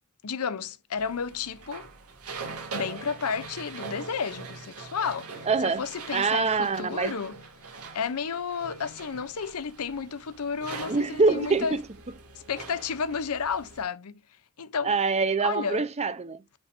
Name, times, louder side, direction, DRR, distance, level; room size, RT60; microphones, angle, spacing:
voice 1, 0.2-1.9 2.5-7.3 7.9-11.8 12.3-14.2 14.6-15.0 15.4-15.9, left 6 dB, 80° left, 0.7 m, -32 dB
sound 1, 1.0-13.8, right 4 dB, 85° right, 2.2 m, -42 dB
voice 2, 5.5-5.8 6.1-7.2 10.9-11.8 14.8-16.4, right 4 dB, 30° right, 0.7 m, -25 dB
8.6 x 4.3 x 2.6 m
head